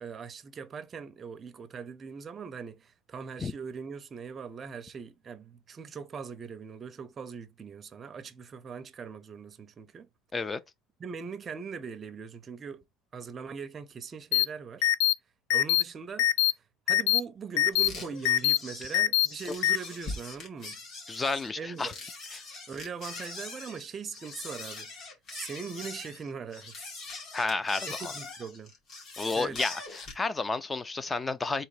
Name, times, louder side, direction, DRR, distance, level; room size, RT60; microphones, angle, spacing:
voice 1, 0.0-10.1 11.0-12.8 13.1-14.9 15.5-16.3 16.9-20.8 21.6-22.0 22.7-24.9 25.3-26.8 27.9-28.7 29.4-29.7, right 5 dB, 25° right, 0.6 m, -41 dB
sound 1, 14.3-14.4 14.8-15.1 15.5-15.8 16.2-16.5 16.9-17.2 17.6-17.9 18.2-18.6 18.9-19.3 19.6-19.8, left 13 dB, 75° left, 0.4 m, -23 dB
sound 2, 17.7-30.2, left 3 dB, 45° left, 2.2 m, -42 dB
voice 2, 21.1-21.9 22.3-22.4 27.3-27.9 29.2-31.6, left 3 dB, 15° left, 0.5 m, -31 dB
3.8 x 2.9 x 4.7 m
cardioid pair, 145°, 0 cm